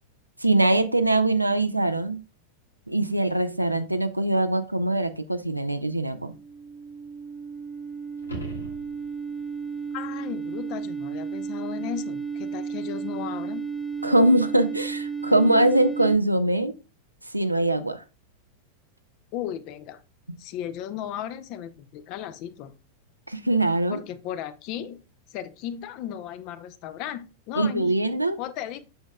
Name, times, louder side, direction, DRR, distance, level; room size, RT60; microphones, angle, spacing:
voice 1, 0.4-2.2 2.9-6.4 14.0-16.7 17.3-18.0 23.3-24.0 27.6-28.4, right 1 dB, 85° right, 9 dB, 0.5 m, -22 dB
sound 1, 5.9-16.2, right 5 dB, 10° left, 0.8 m, -33 dB
sound 2, 8.2-9.4 14.3-14.4, right 2 dB, 85° left, 1.5 m, -38 dB
voice 2, 9.9-13.6 19.3-20.0 20.4-22.7 23.9-25.0 25.3-27.9 28.4-28.8, left 10 dB, 40° left, 13 dB, 0.6 m, -35 dB
7.8 x 6.3 x 2.3 m, 0.30 s
figure-of-eight pair, 90°, 0 cm